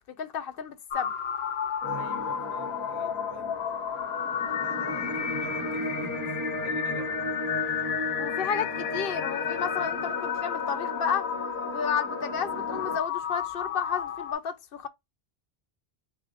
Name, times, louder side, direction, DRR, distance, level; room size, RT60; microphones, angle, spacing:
voice 1, 0.1-1.1 8.2-11.3 11.7-14.9, left 7 dB, 65° left, 0.8 m, -32 dB
sound 1, 0.9-14.3, left 8 dB, 90° left, 0.9 m, -32 dB
sound 2, 1.8-13.0, left 1 dB, 15° left, 1.2 m, -35 dB
voice 2, 1.8-3.6 4.5-7.2, right 4 dB, 65° right, 1.3 m, -48 dB
5.7 x 2.6 x 2.4 m
omnidirectional pair, 1.0 m